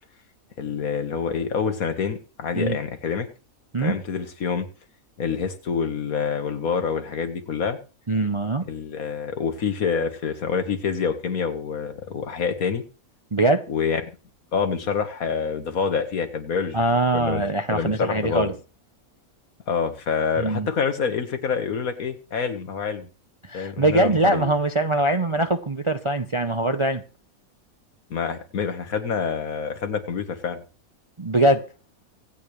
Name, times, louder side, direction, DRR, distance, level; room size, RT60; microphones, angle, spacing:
voice 1, 0.6-3.3 3.8-4.7 5.2-7.8 8.7-12.8 13.7-14.0 14.5-16.8 17.1-17.4 17.7-18.5 19.7-23.1 23.5-24.4 28.1-30.6, left 6 dB, 70° left, 1.8 m, -27 dB
voice 2, 8.1-8.6 13.3-13.6 16.7-18.5 20.4-20.7 23.4-27.0 31.2-31.6, right 2 dB, 30° right, 0.5 m, -22 dB
25.0 x 8.7 x 3.2 m
omnidirectional pair, 1.5 m